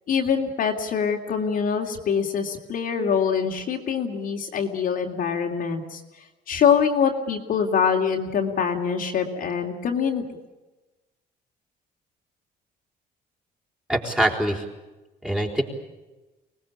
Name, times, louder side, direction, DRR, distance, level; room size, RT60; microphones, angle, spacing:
voice 1, 0.1-6.0 6.5-10.2, left 7 dB, 55° left, 1 dB, 3.1 m, -24 dB
voice 2, 13.9-14.6 15.2-15.6, right 1 dB, 5° right, 0 dB, 4.5 m, -23 dB
25.0 x 19.5 x 8.7 m, 1.1 s
cardioid pair, 110°, 17 cm